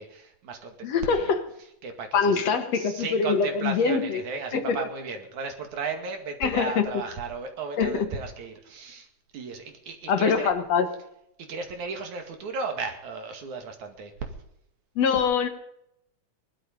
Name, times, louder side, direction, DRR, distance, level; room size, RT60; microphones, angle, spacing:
voice 1, 0.0-1.4 1.8-2.5 2.7-9.1 9.3-10.5 11.4-14.1, right 4 dB, 80° right, 4 dB, 3.6 m, -35 dB
voice 2, 0.8-1.4 2.1-4.2 4.5-4.8 6.4-6.9 7.8-8.1 10.1-10.9 15.0-15.5, left 5 dB, 65° left, 8 dB, 2.4 m, -24 dB
19.5 x 12.0 x 5.4 m, 0.77 s
omnidirectional pair, 3.4 m